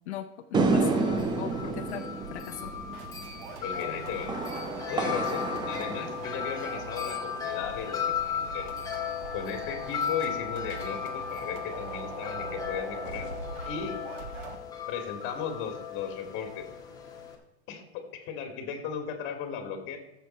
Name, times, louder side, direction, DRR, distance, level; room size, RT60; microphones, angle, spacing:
voice 1, 0.1-2.0 2.3-2.7, left 12 dB, 80° left, 5 dB, 0.8 m, -38 dB
sound 1, 0.5-7.0, right 3 dB, 15° right, 0.8 m, -30 dB
sound 2, 0.6-14.6, right 4 dB, 55° right, 1.8 m, -43 dB
Wind chime, 0.9-17.3, left 8 dB, 10° left, 1.5 m, -36 dB
voice 2, 3.6-4.3 4.9-8.8 9.3-13.3 13.7-14.0 14.9-16.7 17.7-20.0, left 7 dB, 35° left, 5 dB, 2.3 m, -36 dB
13.5 x 7.4 x 4.4 m, 0.98 s
supercardioid pair, 145°, 33 cm